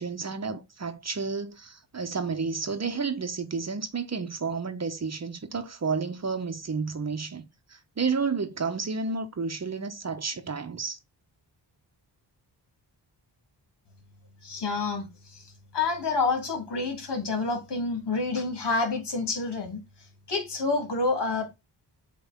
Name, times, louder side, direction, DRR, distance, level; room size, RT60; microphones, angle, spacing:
voice 1, 0.0-11.0, right 5 dB, 35° right, 1.0 m, -31 dB
voice 2, 14.4-21.5, left 3 dB, 65° left, 2.8 m, -29 dB
8.0 x 3.4 x 3.5 m
cardioid pair, 80°, 44 cm